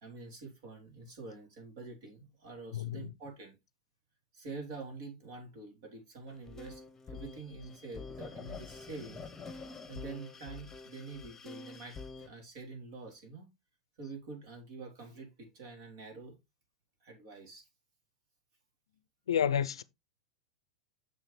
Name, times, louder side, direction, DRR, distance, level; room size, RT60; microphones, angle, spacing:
voice 1, 0.0-3.6 4.3-9.3 9.9-13.5 14.0-16.4 17.0-17.7, right 3 dB, 55° right, 3.5 m, -46 dB
voice 2, 2.7-3.0 19.3-19.8, left 8 dB, 70° left, 0.5 m, -29 dB
sound 1, 6.3-12.3, left 4 dB, 15° left, 1.1 m, -47 dB
6.6 x 6.5 x 3.2 m
figure-of-eight pair, 90°, 3 cm